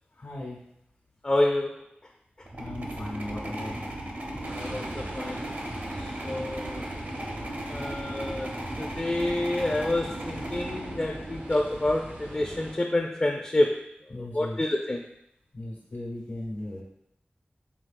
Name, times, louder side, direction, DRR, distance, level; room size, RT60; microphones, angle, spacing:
voice 1, 0.1-0.7 2.6-4.0 14.1-14.6 15.5-16.8, left 1 dB, 80° left, -4 dB, 1.0 m, -37 dB
voice 2, 1.2-1.7 4.5-5.5 6.0-6.8 7.7-8.5 8.8-13.8 14.2-15.0, left 1 dB, 30° left, 2 dB, 0.4 m, -28 dB
sound 1, 2.4-11.8, right 1 dB, 55° right, 0.7 m, -36 dB
sound 2, 4.4-12.7, right 1 dB, 75° right, 1.3 m, -43 dB
4.6 x 3.9 x 2.5 m, 0.78 s
wide cardioid pair, 80°, 4 cm